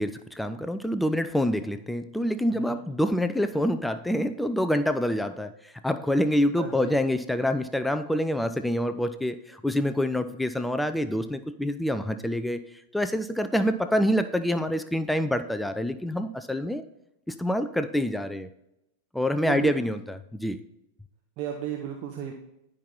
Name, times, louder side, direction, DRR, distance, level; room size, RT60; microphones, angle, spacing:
voice 1, 0.0-16.8 17.3-18.5 19.1-20.6, equal, 5° left, 9 dB, 0.4 m, -26 dB
voice 2, 6.6-7.0 19.4-19.7 21.4-22.3, right 9 dB, 40° right, 2 dB, 0.8 m, -34 dB
10.0 x 5.4 x 4.1 m, 0.85 s
figure-of-eight pair, 90°, 0 cm